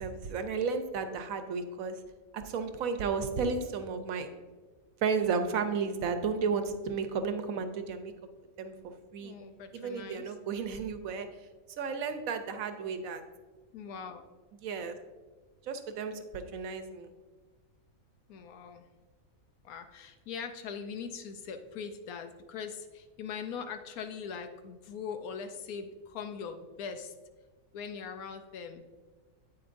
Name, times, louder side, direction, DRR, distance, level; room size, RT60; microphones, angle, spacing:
voice 1, 0.0-2.0 2.3-4.3 5.0-8.1 8.6-9.3 9.7-11.3 11.8-13.2 14.6-15.0 15.6-17.1, right 5 dB, 75° right, 8 dB, 1.1 m, -33 dB
voice 2, 9.2-10.3 13.7-14.2 18.3-18.8 19.6-27.1 27.7-28.8, left 6 dB, 85° left, 7 dB, 1.1 m, -41 dB
8.7 x 8.4 x 2.6 m, 1.3 s
omnidirectional pair, 1.5 m